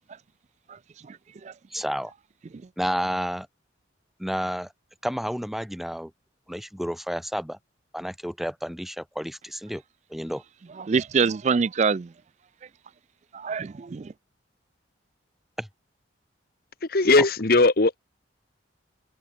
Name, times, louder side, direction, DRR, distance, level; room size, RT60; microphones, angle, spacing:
voice 1, 1.7-2.1 2.8-3.5 4.2-4.7 5.0-6.1 6.5-7.6 7.9-9.8 10.1-10.4 15.6-15.7, equal, ahead, 1.1 m, -30 dB
voice 2, 10.8-12.1 13.3-14.1, right 5 dB, 35° right, 0.3 m, -25 dB
voice 3, 16.9-18.0, left 3 dB, 50° left, 1.1 m, -18 dB
head